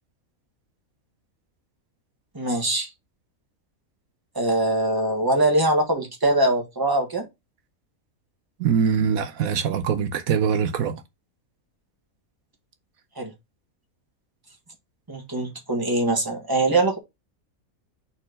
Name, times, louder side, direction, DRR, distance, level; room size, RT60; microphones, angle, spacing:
voice 1, 2.3-2.9 4.3-7.2 13.2-13.3 15.1-17.0, right 2 dB, 15° right, 1.6 m, -22 dB
voice 2, 8.6-11.0, right 7 dB, 80° right, 1.2 m, -23 dB
4.4 x 4.2 x 5.2 m
omnidirectional pair, 1.5 m